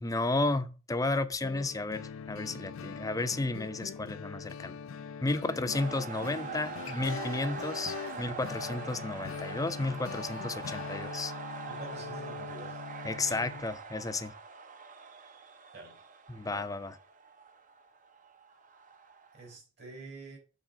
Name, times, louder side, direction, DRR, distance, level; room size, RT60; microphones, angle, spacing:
voice 1, 0.0-4.8 5.2-11.3 13.0-14.3 16.3-16.9, left 2 dB, 15° left, 0.6 m, -33 dB
sound 1, 1.4-13.6, left 6 dB, 90° left, 0.4 m, -42 dB
sound 2, 5.7-19.5, right 5 dB, 40° right, 0.8 m, -43 dB
voice 2, 11.7-12.8 13.3-13.4 15.7-16.0 16.5-16.7 19.3-20.4, right 3 dB, 55° right, 3.9 m, -47 dB
7.3 x 4.1 x 6.4 m
head